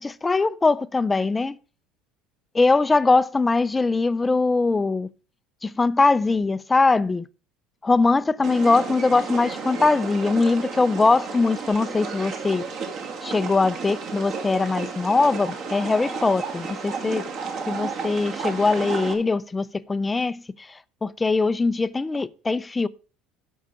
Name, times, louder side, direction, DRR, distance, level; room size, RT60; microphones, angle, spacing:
voice 1, 0.0-1.6 2.5-5.1 5.6-7.2 7.8-12.7 13.2-17.2 17.7-22.9, left 3 dB, 15° left, 0.4 m, -21 dB
sound 1, 8.4-19.1, right 5 dB, 50° right, 2.0 m, -32 dB
12.5 x 5.4 x 4.9 m
cardioid pair, 130°, 0 cm